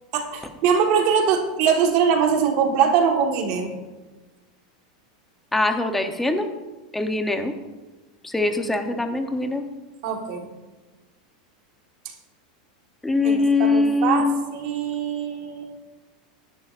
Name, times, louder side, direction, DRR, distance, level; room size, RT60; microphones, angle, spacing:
voice 1, 0.1-3.7 10.0-10.5 13.2-15.7, right 6 dB, 40° right, 3 dB, 1.3 m, -22 dB
voice 2, 5.5-6.5 6.9-7.5 8.2-9.6 13.0-14.4, left 3 dB, 5° left, 6 dB, 0.7 m, -22 dB
18.0 x 11.0 x 2.5 m, 1.2 s
supercardioid pair, 180°, 4 cm